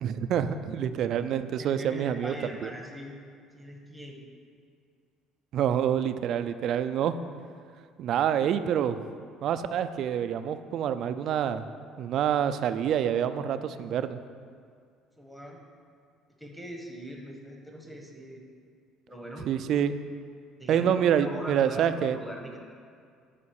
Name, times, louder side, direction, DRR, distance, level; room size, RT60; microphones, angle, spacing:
voice 1, 0.0-2.3 2.6-2.7 5.5-7.1 8.0-9.0 9.4-11.7 12.0-14.2 19.5-19.9 20.7-22.2, right 9 dB, 50° right, 11 dB, 0.4 m, -27 dB
voice 2, 1.6-3.2 3.5-4.2 15.2-15.6 16.4-18.4 19.1-19.5 20.6-22.6, equal, ahead, 0 dB, 1.2 m, -41 dB
9.9 x 5.1 x 6.5 m, 2.2 s
cardioid pair, 150°, 0 cm